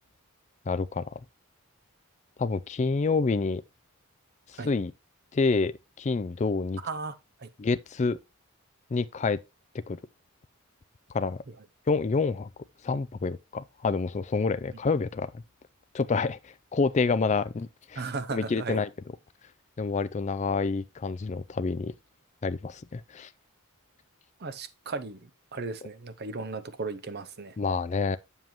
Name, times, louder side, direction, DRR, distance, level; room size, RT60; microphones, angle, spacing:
voice 1, 0.7-1.2 2.4-3.6 4.5-4.9 5.3-6.8 7.6-8.2 8.9-9.4 9.9-10.0 11.1-11.4 11.9-12.5 12.8-15.4 15.9-18.0 18.3-18.9 19.8-21.9 22.4-23.3 27.6-28.2, left 4 dB, 30° left, 0.3 m, -28 dB
voice 2, 6.8-7.1 7.4-7.5 18.0-18.8 24.4-27.5, right 3 dB, 45° right, 0.7 m, -36 dB
7.4 x 7.2 x 3.0 m
head